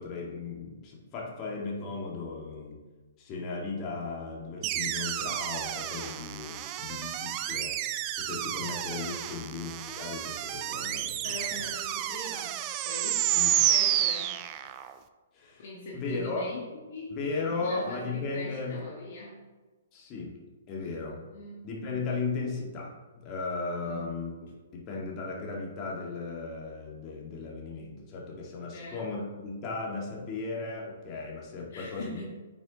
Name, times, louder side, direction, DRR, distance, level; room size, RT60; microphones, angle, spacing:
voice 1, 0.0-2.8 3.2-7.8 8.2-11.4 11.6-11.7 13.4-13.6 15.3-15.6 15.9-16.4 17.1-18.8 19.9-20.4 20.7-21.2 21.6-24.3 24.7-32.3, left 4 dB, 30° left, -3 dB, 2.0 m, -36 dB
sound 1, 4.6-14.9, right 12 dB, 30° right, 0.5 m, -30 dB
voice 2, 9.1-9.4 11.2-12.6 12.8-14.4 15.6-17.2 17.5-19.4 20.8-21.0 21.3-21.7 23.8-24.3 28.7-29.0 31.7-32.3, left 2 dB, 50° left, -3 dB, 1.5 m, -42 dB
8.9 x 6.3 x 3.0 m, 1.3 s
figure-of-eight pair, 120°, 0 cm